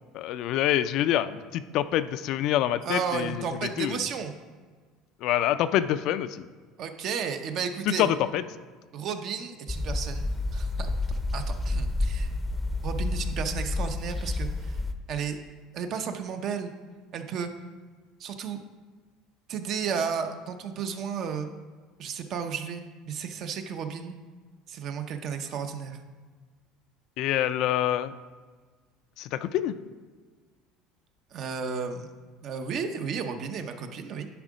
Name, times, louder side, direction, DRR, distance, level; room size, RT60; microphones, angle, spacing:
voice 1, 0.1-3.4 3.8-4.0 5.2-6.4 8.0-8.4 27.2-28.1 29.2-29.7, left 12 dB, 60° left, 13 dB, 0.4 m, -26 dB
voice 2, 2.8-4.3 6.8-8.1 8.9-10.9 11.3-12.3 12.8-14.8 15.1-15.4 15.7-16.7 17.1-17.5 18.2-18.6 19.5-21.5 22.0-24.2 24.7-26.0 31.3-32.1 32.4-34.3, right 6 dB, 50° right, 7 dB, 0.7 m, -33 dB
sound 1, 9.7-14.9, left 2 dB, 10° left, 0.6 m, -29 dB
10.5 x 3.7 x 5.0 m, 1.4 s
supercardioid pair, 110°, 0 cm